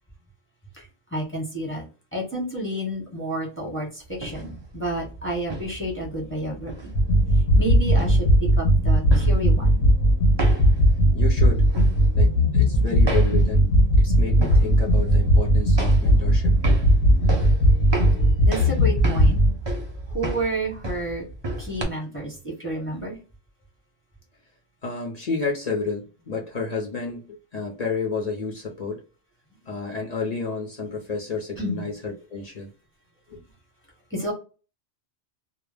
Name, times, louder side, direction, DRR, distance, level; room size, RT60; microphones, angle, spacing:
voice 1, 1.1-1.8 2.1-3.9 4.2-6.9 7.6-9.8 12.9-13.0 18.4-19.4 20.1-21.2 21.6-23.1 31.6-31.9 34.1-34.3, right 1 dB, 10° left, 0.7 m, -30 dB
sound 1, 4.1-21.8, right 2 dB, 35° right, 0.4 m, -33 dB
sound 2, 6.9-19.5, equal, 70° left, 0.8 m, -18 dB
voice 2, 11.1-11.7 12.2-13.7 14.0-16.8 24.8-29.0 29.7-32.7 33.3-33.4, left 4 dB, 50° left, 0.5 m, -31 dB
2.1 x 2.0 x 3.2 m
omnidirectional pair, 1.2 m